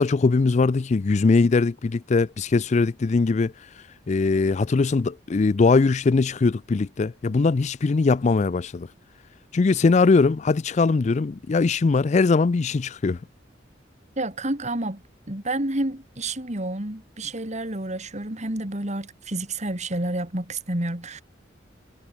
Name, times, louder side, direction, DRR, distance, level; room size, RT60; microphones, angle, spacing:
voice 1, 0.0-3.5 4.1-8.9 9.5-13.2, left 4 dB, 40° left, 0.4 m, -21 dB
voice 2, 14.2-21.2, right 1 dB, 40° right, 3.0 m, -29 dB
head